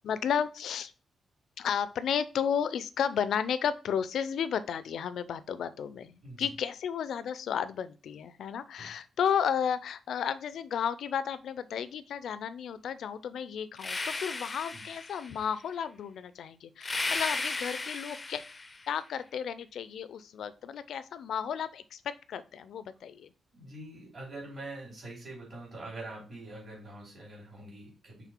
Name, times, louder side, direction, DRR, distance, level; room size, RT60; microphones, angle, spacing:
voice 1, 0.0-0.9 1.6-18.4 18.9-23.3, left 8 dB, 80° left, 14 dB, 0.5 m, -33 dB
sound 1, 13.8-15.4 16.8-18.9, left 3 dB, 25° left, 0.5 m, -35 dB
voice 2, 23.5-28.3, right 2 dB, 40° right, -8 dB, 3.3 m, -44 dB
6.0 x 3.6 x 4.5 m, 0.34 s
wide cardioid pair, 145°, 0 cm